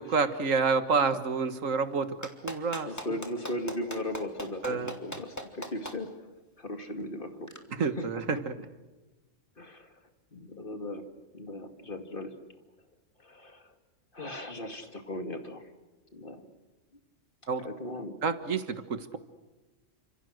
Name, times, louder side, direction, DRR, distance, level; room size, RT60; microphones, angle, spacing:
voice 1, 0.0-2.9 4.6-4.9 7.7-8.5 17.5-17.7 18.2-19.2, right 5 dB, 90° right, 10 dB, 1.9 m, -28 dB
Clapping, 2.2-5.9 7.5-7.6, equal, 15° left, 2.6 m, -38 dB
voice 2, 2.9-6.1 6.6-7.5 7.8-8.2 9.6-9.9 10.3-11.0 11.3-12.3 13.2-13.7 14.1-15.7 16.1-16.5 17.6-18.2, left 1 dB, 40° left, 6 dB, 2.6 m, -37 dB
29.5 x 26.5 x 6.5 m, 1.1 s
omnidirectional pair, 1.3 m